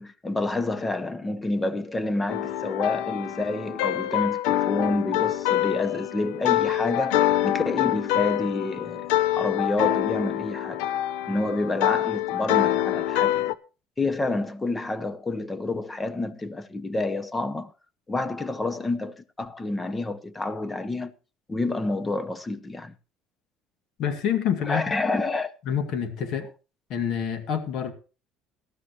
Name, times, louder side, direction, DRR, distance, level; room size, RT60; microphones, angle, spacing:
voice 1, 0.0-9.1 9.3-10.8 11.3-13.4 14.0-17.7 18.1-21.1 21.5-22.9 24.7-25.5, left 2 dB, 15° left, 0.9 m, -28 dB
sound 1, 2.3-13.5, left 13 dB, 85° left, 0.6 m, -25 dB
voice 2, 24.0-24.8 25.6-26.5 26.9-27.9, left 8 dB, 60° left, 2.2 m, -27 dB
18.5 x 13.0 x 3.0 m
cardioid pair, 120°, 0 cm